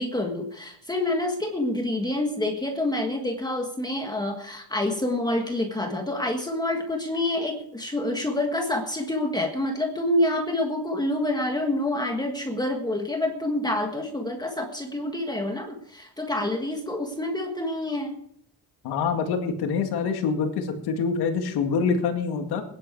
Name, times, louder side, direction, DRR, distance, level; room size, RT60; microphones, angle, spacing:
voice 1, 0.0-18.2, left 1 dB, 10° left, 3 dB, 1.5 m, -27 dB
voice 2, 18.8-22.6, left 5 dB, 90° left, 5 dB, 2.2 m, -25 dB
20.5 x 10.5 x 4.7 m, 0.71 s
cardioid pair, 155°, 37 cm